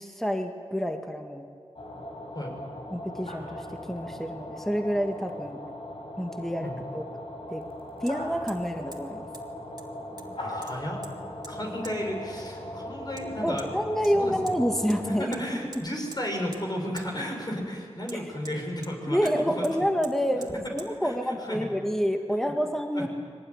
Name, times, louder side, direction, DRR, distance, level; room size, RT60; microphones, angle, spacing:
voice 1, 0.0-1.5 2.9-5.6 6.2-7.0 7.5-7.7 8.0-9.3 13.4-15.6 18.1-18.2 19.1-23.1, equal, 5° left, 4 dB, 1.9 m, -28 dB
sound 1, 1.8-15.3, left 1 dB, 60° left, 5.8 m, -39 dB
Hammer, 6.1-6.2 8.1-8.2 8.5-8.7 8.9-9.0 9.3-9.4 9.8-10.3 10.6-11.1 11.4-11.5 11.8-12.0 13.2-13.3 13.6-13.7 14.0-14.6 14.9-15.0 15.3-15.4 15.7-16.2 16.5-16.7 17.0-17.1 18.1-18.9 19.3-19.4 19.6-19.7 20.0-20.1 20.4-20.5 20.8-20.9, right 2 dB, 40° right, 2.5 m, -45 dB
voice 2, 10.4-11.0 11.5-13.7 14.1-14.5 15.0-19.3 19.5-19.6 21.0-21.6 22.3-22.5 22.9-23.1, equal, 40° left, 0 dB, 6.7 m, -34 dB
23.0 x 19.0 x 9.9 m, 2.2 s
wide cardioid pair, 55°, 11 cm